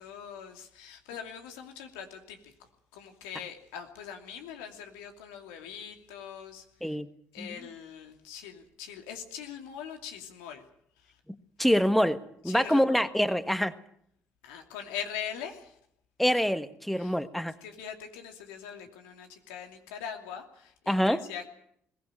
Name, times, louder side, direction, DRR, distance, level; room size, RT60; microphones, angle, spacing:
voice 1, 0.0-7.0 7.3-10.6 11.0-11.2 12.5-13.0 14.4-15.7 17.0-17.1 17.6-21.5, left 8 dB, 90° left, 5 dB, 2.7 m, -42 dB
voice 2, 11.6-12.2 12.4-13.8 16.2-17.6 20.9-21.2, equal, ahead, 11 dB, 1.5 m, -25 dB
21.5 x 16.5 x 9.0 m, 0.72 s
supercardioid pair, 65°, 6 cm